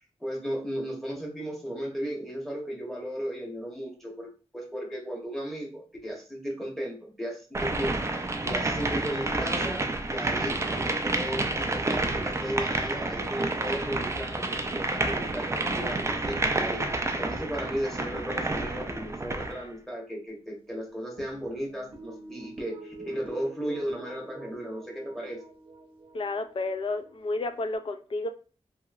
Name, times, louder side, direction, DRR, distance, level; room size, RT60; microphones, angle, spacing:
voice 1, 0.2-25.4, equal, ahead, -2 dB, 1.0 m, -35 dB
sound 1, 7.5-19.6, right 2 dB, 25° right, 0.3 m, -29 dB
sound 2, 21.2-27.8, right 3 dB, 50° right, 0.7 m, -46 dB
voice 2, 26.1-28.3, left 2 dB, 50° left, 9 dB, 0.4 m, -31 dB
2.9 x 2.7 x 2.4 m, 0.37 s
wide cardioid pair, 105°, 11 cm